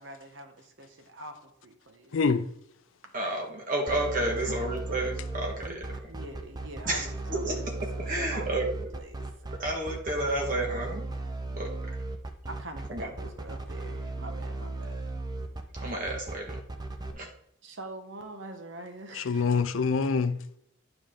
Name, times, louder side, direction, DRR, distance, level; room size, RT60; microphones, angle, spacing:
voice 1, 0.0-2.2 4.4-4.5 5.6-5.8 6.0-7.6 8.0-8.4 8.9-9.6 12.5-15.2 17.6-19.5, right 2 dB, 75° right, 1.1 m, -44 dB
voice 2, 2.1-2.4 19.1-20.6, left 5 dB, 85° left, 0.5 m, -26 dB
voice 3, 3.1-5.9 6.8-8.9 9.5-11.1 11.5-12.0 12.9-13.1 15.7-16.6 17.1-17.3, right 1 dB, 45° right, 1.6 m, -31 dB
sound 1, 3.9-17.1, right 2 dB, 20° right, 0.6 m, -36 dB
9.6 x 4.9 x 3.7 m
head